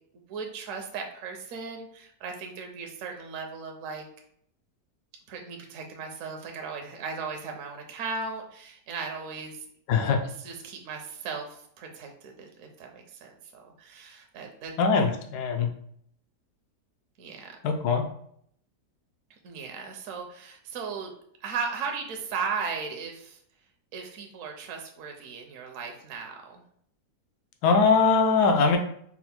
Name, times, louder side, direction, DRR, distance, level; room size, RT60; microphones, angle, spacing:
voice 1, 0.3-4.0 5.3-9.6 10.4-14.7 17.2-17.6 19.4-21.1 21.4-23.4 23.9-26.6, right 5 dB, 65° right, 3 dB, 0.8 m, -37 dB
voice 2, 9.9-10.2 14.8-15.7 17.6-18.0 27.6-28.8, left 5 dB, 80° left, 4 dB, 1.1 m, -21 dB
4.3 x 2.1 x 4.1 m, 0.67 s
omnidirectional pair, 1.7 m